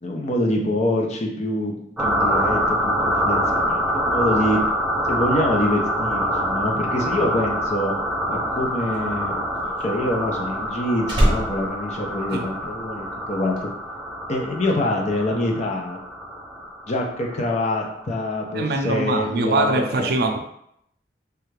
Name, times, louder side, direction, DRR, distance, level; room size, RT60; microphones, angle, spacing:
voice 1, 0.0-4.6 5.1-7.9 8.3-9.3 9.8-13.7 14.3-16.0 16.9-20.1, left 1 dB, 40° left, 0 dB, 0.6 m, -25 dB
sound 1, 2.0-18.2, equal, 5° right, 0.4 m, -25 dB
Slam, 8.1-12.9 13.2-13.6, equal, 30° right, 0.7 m, -26 dB
voice 2, 18.5-20.4, right 2 dB, 65° right, 4 dB, 0.4 m, -23 dB
3.3 x 2.4 x 3.2 m, 0.74 s
head